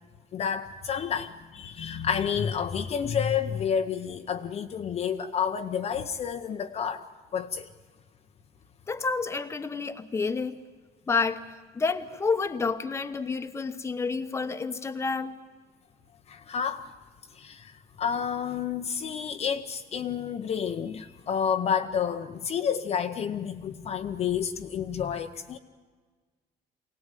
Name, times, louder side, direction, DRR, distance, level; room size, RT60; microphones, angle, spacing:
voice 1, 0.3-7.1 7.3-7.7 16.3-16.9 17.3-25.6, left 7 dB, 35° left, 6 dB, 0.8 m, -30 dB
voice 2, 8.9-10.6 11.1-11.5 11.7-15.3, left 4 dB, 15° left, 8 dB, 1.0 m, -29 dB
24.0 x 18.0 x 9.1 m, 1.5 s
cardioid pair, 170°, 17 cm